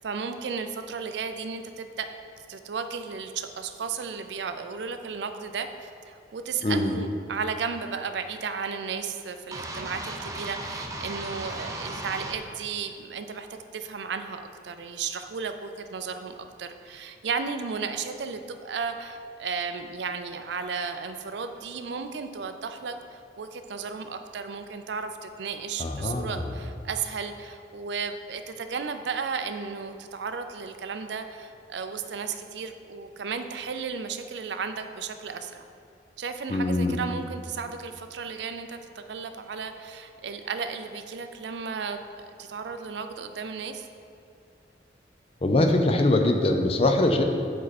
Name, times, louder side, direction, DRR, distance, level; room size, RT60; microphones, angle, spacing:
voice 1, 0.0-2.1 2.5-35.6 36.2-42.0 42.4-43.9, right 5 dB, 75° right, 8 dB, 0.4 m, -34 dB
voice 2, 6.6-7.0 25.8-26.5 36.5-37.0 45.4-47.2, left 2 dB, 30° left, 5 dB, 0.5 m, -23 dB
sound 1, 9.5-12.4, right 2 dB, 20° right, 0.5 m, -36 dB
7.5 x 4.5 x 4.1 m, 2.6 s
head